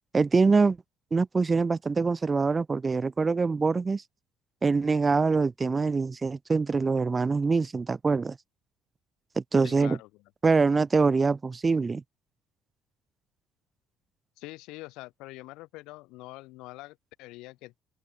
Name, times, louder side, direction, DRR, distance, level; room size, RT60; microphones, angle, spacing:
voice 1, 0.1-0.8 1.1-4.0 4.6-8.4 9.3-10.0 10.4-12.0, right 4 dB, 25° right, 1.5 m, -24 dB
voice 2, 9.6-10.1 14.4-17.8, left 20 dB, 80° left, 5.6 m, -44 dB
open air
cardioid pair, 100°, 0 cm